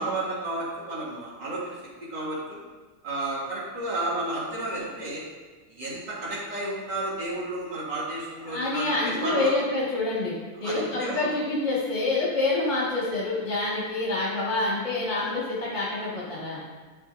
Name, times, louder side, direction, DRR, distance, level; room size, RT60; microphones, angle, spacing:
voice 1, 0.0-1.8 2.1-2.6 3.0-5.2 5.7-9.5 10.6-11.3, right 2 dB, 55° right, -7 dB, 3.0 m, -32 dB
voice 2, 8.5-10.3 10.6-16.6, left 2 dB, 35° left, -8 dB, 2.0 m, -27 dB
11.5 x 6.7 x 2.6 m, 1.4 s
omnidirectional pair, 2.3 m